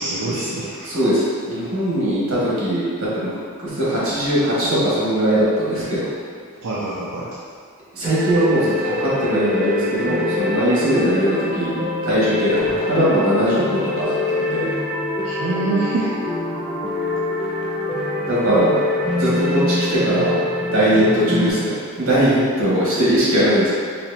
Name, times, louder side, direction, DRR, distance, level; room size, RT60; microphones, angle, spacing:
voice 1, 0.0-0.9 6.6-7.3 15.2-16.1 16.9-17.0, right 3 dB, 85° right, -6 dB, 0.5 m, -25 dB
voice 2, 0.8-3.3 3.6-6.1 8.0-11.7 12.0-12.6 12.9-14.7 18.2-18.8 19.2-23.7, equal, 65° right, -9 dB, 1.4 m, -20 dB
sound 1, 8.0-21.5, left 2 dB, 5° right, 0.3 m, -24 dB
4.2 x 2.9 x 2.8 m, 2.1 s
head